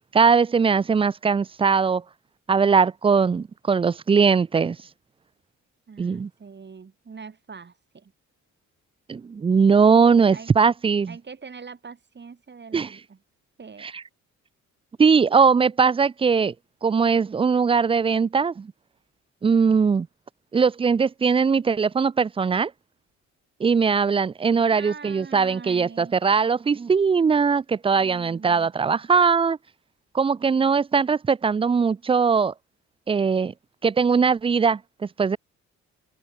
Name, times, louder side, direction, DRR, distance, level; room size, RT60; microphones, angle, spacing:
voice 1, 0.1-2.0 2.5-4.8 6.0-6.3 9.1-11.1 12.7-12.9 13.8-13.9 15.0-16.5 16.8-18.7 19.4-20.1 20.5-22.7 23.6-29.6 30.1-32.5 33.1-33.5 33.8-35.4, right 5 dB, 20° right, 0.4 m, -20 dB
voice 2, 5.9-8.1 10.3-10.5 11.1-13.2 13.6-13.9 24.7-26.2 27.9-28.7, right 5 dB, 35° right, 5.0 m, -43 dB
open air
cardioid pair, 90°, 30 cm